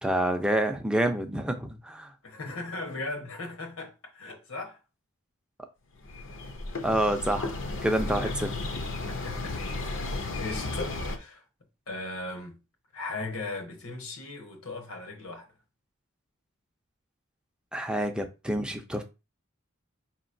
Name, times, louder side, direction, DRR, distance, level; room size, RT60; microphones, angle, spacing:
voice 1, 0.0-2.1 6.8-7.6 7.8-8.5 17.7-19.0, right 1 dB, 5° right, 0.5 m, -27 dB
voice 2, 2.2-4.8 8.2-8.3 9.1-11.4 11.9-12.6 12.9-15.5, left 3 dB, 80° left, 1.2 m, -38 dB
sound 1, 6.0-11.2, left 2 dB, 60° left, 0.7 m, -34 dB
5.1 x 3.0 x 2.6 m
head